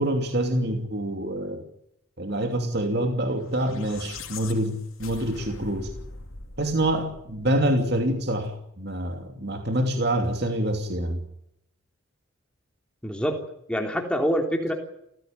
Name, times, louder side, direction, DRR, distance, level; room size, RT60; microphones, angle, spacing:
voice 1, 0.0-1.6 2.2-5.9 6.6-11.2, right 1 dB, 50° right, 4 dB, 2.8 m, -26 dB
sound 1, 3.5-7.9, left 3 dB, 85° left, 2.9 m, -42 dB
voice 2, 13.0-13.4 13.7-14.7, equal, 5° left, 3 dB, 3.4 m, -25 dB
29.0 x 15.5 x 9.2 m, 0.79 s
head